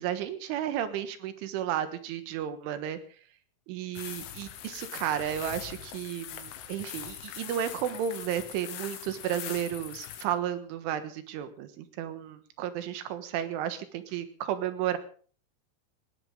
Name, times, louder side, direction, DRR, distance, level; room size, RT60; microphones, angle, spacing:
voice 1, 0.0-3.0 3.7-15.0, right 10 dB, 75° right, 10 dB, 3.7 m, -33 dB
sound 1, 3.9-10.2, left 11 dB, 75° left, 3.7 m, -42 dB
19.5 x 18.0 x 3.8 m, 0.43 s
omnidirectional pair, 6.0 m